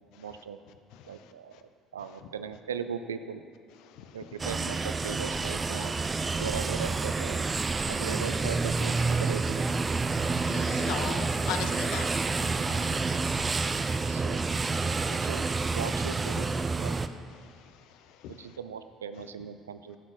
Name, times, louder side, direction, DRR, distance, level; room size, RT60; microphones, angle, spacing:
voice 1, 0.2-0.6 1.0-1.6 1.9-3.4 4.1-5.9 6.4-7.5 7.8-9.7 12.6-13.2 14.1-14.4 15.1-17.0 18.4-20.0, right 7 dB, 75° right, 10 dB, 0.4 m, -39 dB
sound 1, 4.4-17.1, right 4 dB, 25° right, 0.5 m, -29 dB
voice 2, 10.5-12.3 18.2-18.3, left 9 dB, 60° left, 9 dB, 0.7 m, -37 dB
13.0 x 7.3 x 6.1 m, 2.2 s
figure-of-eight pair, 55°, 0 cm